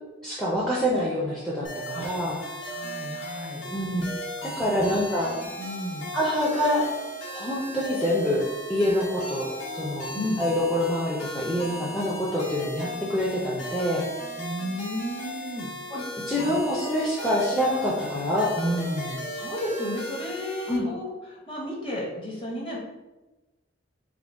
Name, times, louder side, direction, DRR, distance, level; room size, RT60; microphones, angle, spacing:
voice 1, 0.2-2.4 3.7-5.3 6.1-6.8 7.3-8.4 8.7-10.1 10.4-14.0 15.9-19.2 20.7-20.9, equal, ahead, -6 dB, 0.4 m, -26 dB
sound 1, 1.6-20.8, equal, 75° left, 0.9 m, -37 dB
voice 2, 2.6-4.0 4.4-6.1 10.1-10.4 14.4-15.7 16.4-16.7 19.3-22.8, equal, 25° left, -4 dB, 0.8 m, -34 dB
3.6 x 2.1 x 3.5 m, 1.1 s
head